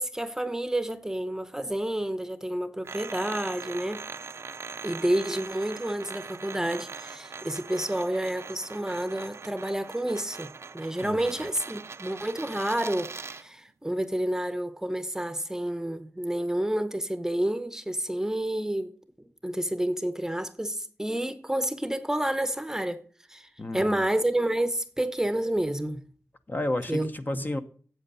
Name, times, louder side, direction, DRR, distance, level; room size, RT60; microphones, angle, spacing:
voice 1, 0.0-4.1 4.8-18.9 19.2-23.0 23.3-26.0 26.9-27.5, right 1 dB, 10° right, 0.8 m, -29 dB
sound 1, 2.8-13.5, right 4 dB, 55° right, 0.4 m, -41 dB
voice 2, 11.0-11.5 23.6-24.1 26.5-27.6, left 1 dB, 35° left, 0.9 m, -32 dB
8.0 x 7.9 x 5.5 m
wide cardioid pair, 80°, 5 cm